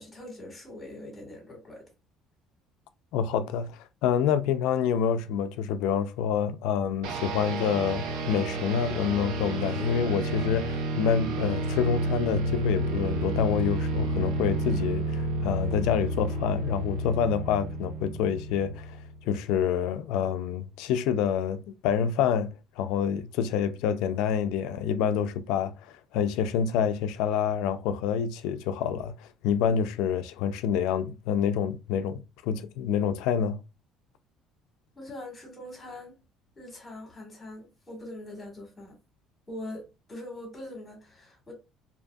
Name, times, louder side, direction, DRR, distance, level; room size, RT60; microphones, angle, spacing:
voice 1, 0.0-1.9 34.9-36.1 36.6-39.0 39.5-41.5, left 1 dB, 20° left, 1.4 m, -42 dB
voice 2, 3.1-19.0 19.3-33.6, left 8 dB, 80° left, 0.3 m, -27 dB
sound 1, 7.0-19.2, right 1 dB, 80° right, 0.5 m, -30 dB
2.7 x 2.6 x 2.2 m
cardioid pair, 145°, 0 cm